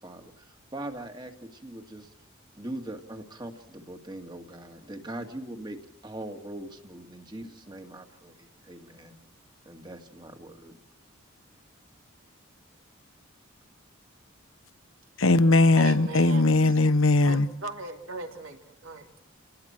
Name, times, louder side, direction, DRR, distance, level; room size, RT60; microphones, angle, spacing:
voice 1, 0.0-2.1 2.5-5.8 6.0-9.2 9.7-10.8, right 1 dB, 20° right, 2.2 m, -41 dB
voice 2, 15.2-17.5, left 2 dB, 75° left, 1.1 m, -20 dB
voice 3, 15.8-16.8 17.2-19.1, right 3 dB, 75° right, 3.2 m, -39 dB
29.0 x 19.5 x 4.5 m
head